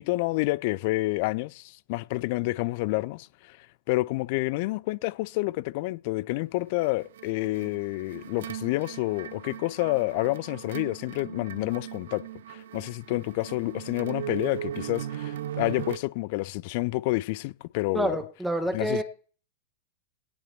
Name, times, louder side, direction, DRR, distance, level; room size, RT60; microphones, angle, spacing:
voice 1, 0.0-3.6 3.9-12.2 12.5-18.1 18.7-19.0, left 20 dB, 50° left, 0.5 m, -29 dB
Ambient strings, 6.8-16.0, right 11 dB, 60° right, 0.9 m, -38 dB
voice 2, 17.9-19.0, right 1 dB, 5° right, 1.5 m, -27 dB
17.5 x 7.7 x 4.5 m
figure-of-eight pair, 90°, 0 cm